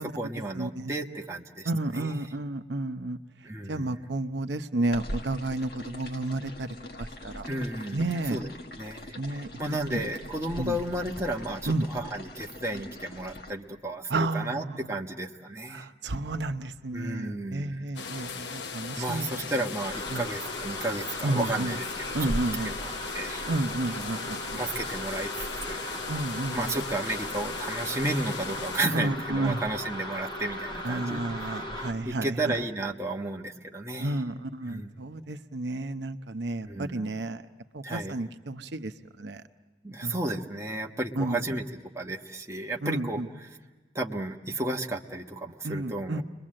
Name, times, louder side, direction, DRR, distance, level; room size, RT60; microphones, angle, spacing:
voice 1, 0.0-2.3 3.4-4.0 7.5-8.5 8.8-15.9 16.9-17.9 19.0-22.3 22.6-23.4 24.6-26.0 26.5-34.2 34.7-35.0 36.6-37.1 37.8-38.2 39.8-41.7 41.9-43.6 43.9-46.2, right 1 dB, 15° right, 0 dB, 1.1 m, -33 dB
voice 2, 0.5-0.9 1.7-3.2 3.7-6.7 7.0-7.5 7.9-8.4 9.2-9.5 9.9-10.1 10.6-10.8 11.7-11.9 14.1-14.9 15.7-19.4 20.1-20.3 21.2-21.8 22.1-22.7 23.5-24.6 26.1-26.7 28.9-29.6 30.8-32.6 34.0-37.4 37.7-38.9 39.2-39.4 40.0-40.1 41.2-41.4 42.8-43.3 45.6-46.2, right 2 dB, 80° right, 8 dB, 0.8 m, -31 dB
sound 1, 4.9-13.5, left 1 dB, 55° left, 1.4 m, -42 dB
sound 2, 18.0-28.8, left 5 dB, 85° left, 0.8 m, -38 dB
sound 3, 19.8-31.9, equal, 25° left, 3.2 m, -37 dB
30.0 x 22.0 x 7.6 m, 1.2 s
head